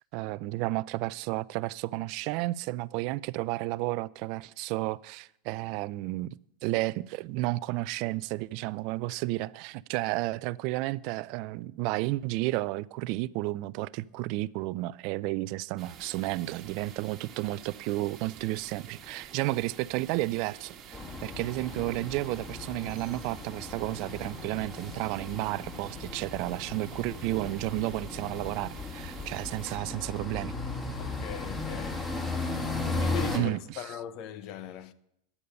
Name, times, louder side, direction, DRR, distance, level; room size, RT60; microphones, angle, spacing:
voice 1, 0.1-6.3 6.6-30.5 33.3-33.6, right 19 dB, 55° right, 0.4 m, -32 dB
sound 1, 15.8-29.8, right 8 dB, 40° right, 1.3 m, -49 dB
sound 2, 20.9-33.4, left 3 dB, 20° left, 2.7 m, -36 dB
voice 2, 31.0-32.1 33.0-34.9, left 9 dB, 55° left, 0.9 m, -39 dB
11.0 x 8.5 x 6.7 m
hypercardioid pair, 110°, 0 cm